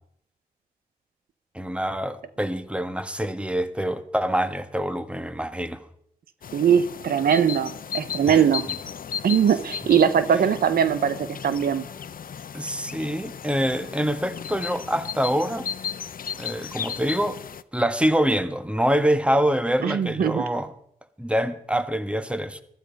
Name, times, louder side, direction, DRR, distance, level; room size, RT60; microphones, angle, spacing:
voice 1, 1.5-5.8 8.3-8.4 12.5-15.6 16.4-17.4 17.7-20.7 21.2-22.6, equal, 5° right, 1.4 m, -25 dB
sound 1, 6.4-17.6, left 8 dB, 70° left, 0.6 m, -35 dB
voice 2, 6.5-8.7 9.2-11.8 19.8-20.4, right 8 dB, 85° right, 0.7 m, -21 dB
14.5 x 13.0 x 5.2 m
cardioid pair, 45°, 15 cm